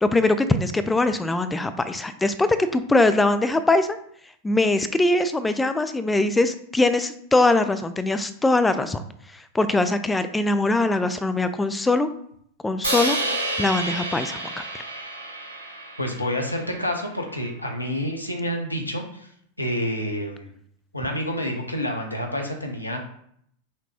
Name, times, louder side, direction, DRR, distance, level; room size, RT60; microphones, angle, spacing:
voice 1, 0.0-4.0 4.4-9.0 9.3-12.1 12.6-13.2 13.6-14.4 14.7-14.8, left 2 dB, 10° left, 11 dB, 0.3 m, -22 dB
Crash cymbal, 12.8-17.0, right 1 dB, 80° right, 1.2 m, -29 dB
voice 2, 16.0-19.3 19.6-20.5 20.9-23.1, equal, 85° left, 2 dB, 0.7 m, -28 dB
5.7 x 2.2 x 2.9 m, 0.67 s
figure-of-eight pair, 90°, 0 cm